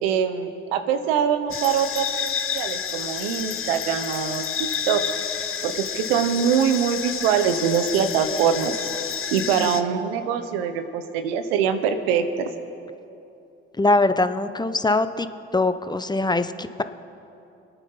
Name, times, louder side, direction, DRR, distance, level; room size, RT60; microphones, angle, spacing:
voice 1, 0.0-5.0 5.6-8.9 9.3-12.5, right 7 dB, 85° right, 9 dB, 1.1 m, -23 dB
sound 1, 1.5-9.8, left 7 dB, 45° left, 1.1 m, -30 dB
voice 2, 13.8-15.3 15.5-16.8, left 2 dB, 15° left, 11 dB, 0.9 m, -22 dB
26.5 x 9.2 x 5.5 m, 2.8 s
hypercardioid pair, 50°, 29 cm